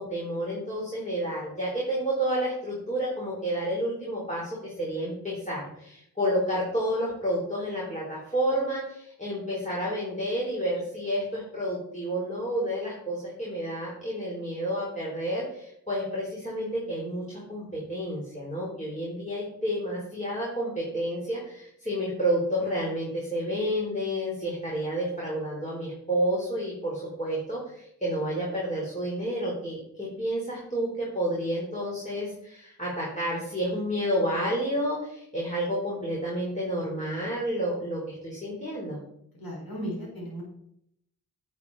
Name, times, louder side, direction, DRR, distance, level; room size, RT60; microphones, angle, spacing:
voice 1, 0.0-39.0, equal, 20° left, -6 dB, 4.4 m, -30 dB
voice 2, 39.4-40.4, equal, 75° left, -3 dB, 4.6 m, -35 dB
9.7 x 9.5 x 4.3 m, 0.74 s
cardioid pair, 45°, 36 cm